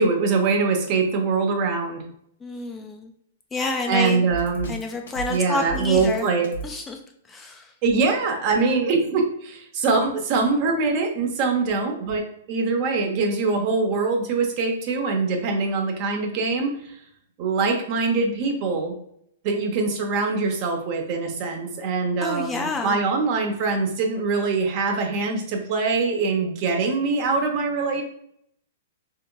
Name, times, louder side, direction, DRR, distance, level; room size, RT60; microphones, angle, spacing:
voice 1, 0.0-2.0 3.9-4.7 5.3-6.4 7.8-17.0 17.4-18.9 19.4-28.0, right 4 dB, 45° right, 3 dB, 0.7 m, -23 dB
voice 2, 2.4-3.1 3.5-4.2 4.7-6.3 6.6-7.0 7.3-7.7 22.2-23.0, left 3 dB, 15° left, 3 dB, 0.4 m, -29 dB
Drum kit, 4.3-6.7, right 4 dB, 70° left, 0.6 m, -34 dB
3.4 x 2.8 x 2.2 m, 0.71 s
hypercardioid pair, 110°, 0 cm